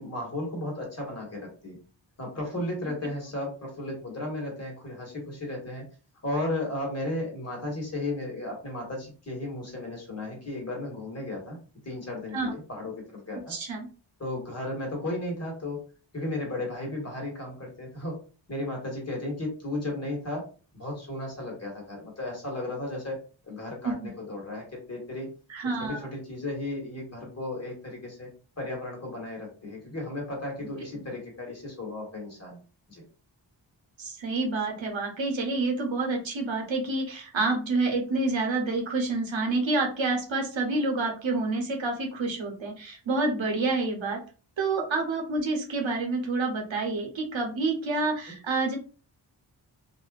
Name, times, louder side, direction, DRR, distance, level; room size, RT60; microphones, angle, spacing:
voice 1, 0.0-1.8 2.2-5.8 6.2-11.6 11.8-13.5 14.2-15.8 16.1-18.2 18.5-20.4 20.7-23.2 23.5-25.3 25.8-28.3 28.6-32.6 32.9-33.0, left 1 dB, 35° left, -1 dB, 1.5 m, -34 dB
voice 2, 13.5-13.9 23.8-23.9 25.5-26.0 34.0-44.2 44.6-48.8, right 3 dB, 75° right, 2 dB, 0.9 m, -28 dB
2.5 x 2.4 x 2.3 m, 0.36 s
wide cardioid pair, 60°, 46 cm